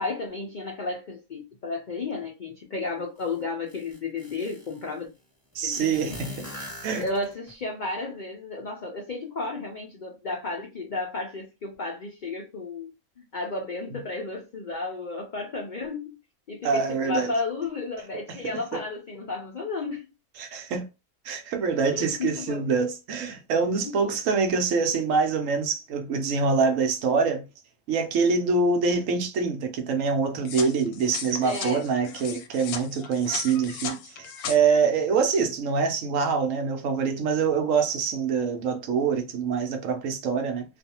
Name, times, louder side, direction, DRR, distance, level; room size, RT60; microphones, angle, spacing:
voice 1, 0.0-5.1 5.6-6.2 6.9-12.9 13.2-16.2 16.5-20.1 21.9-22.6 23.8-24.1 31.4-31.8, left 3 dB, 70° left, 0.4 m, -33 dB
sound 1, 3.2-3.3 3.7-4.8 5.7-7.5, left 1 dB, 5° left, 1.4 m, -41 dB
voice 2, 5.5-6.3 6.8-7.0 16.6-17.3 18.4-18.5 20.4-20.9 21.2-27.4 27.9-40.6, right 5 dB, 70° right, 0.9 m, -25 dB
sound 2, 30.4-34.6, left 7 dB, 90° left, 1.1 m, -37 dB
2.5 x 2.3 x 2.8 m
omnidirectional pair, 1.5 m